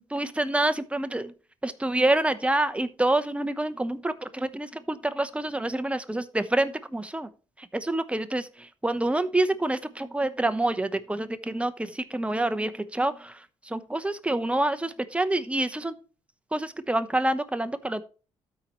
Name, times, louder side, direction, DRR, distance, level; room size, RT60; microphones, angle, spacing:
voice 1, 0.1-1.3 1.6-7.3 7.7-13.3 13.7-15.9 16.5-18.0, right 1 dB, 10° right, 11 dB, 0.9 m, -27 dB
12.5 x 4.6 x 3.0 m, 0.36 s
supercardioid pair, 60°, 13 cm